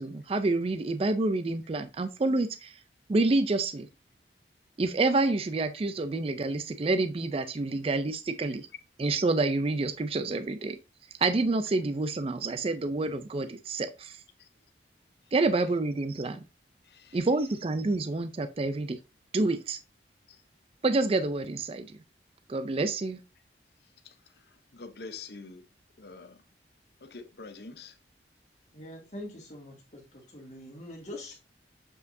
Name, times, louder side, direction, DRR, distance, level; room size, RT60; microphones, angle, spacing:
voice 1, 0.0-2.8 3.1-3.9 4.8-8.7 9.0-10.8 11.2-14.2 15.3-16.4 17.1-19.0 19.3-19.8 20.8-21.9 22.5-23.2, right 3 dB, 30° right, 0.4 m, -28 dB
voice 2, 24.7-25.6 26.0-26.4 27.0-27.9, left 4 dB, 60° left, 0.7 m, -44 dB
voice 3, 28.7-31.4, left 1 dB, 40° left, 2.2 m, -43 dB
7.2 x 5.3 x 2.6 m
head